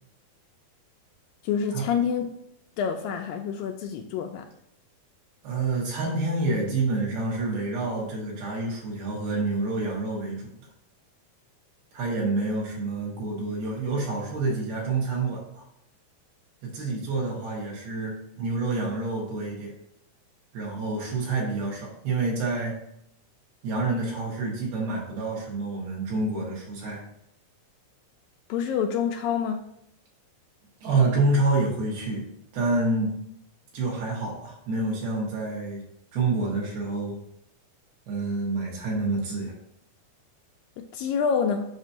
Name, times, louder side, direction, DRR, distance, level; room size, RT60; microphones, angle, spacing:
voice 1, 1.4-2.3 2.8-4.5 28.5-29.6 40.8-41.7, left 7 dB, 80° left, 4 dB, 2.2 m, -27 dB
voice 2, 5.4-10.5 11.9-15.6 16.6-19.7 20.5-22.8 23.6-27.0 30.8-32.3 32.5-33.2 33.7-35.8 36.1-37.2 38.1-39.5, right 3 dB, 80° right, -3 dB, 3.8 m, -28 dB
7.4 x 6.0 x 2.8 m, 0.76 s
omnidirectional pair, 4.4 m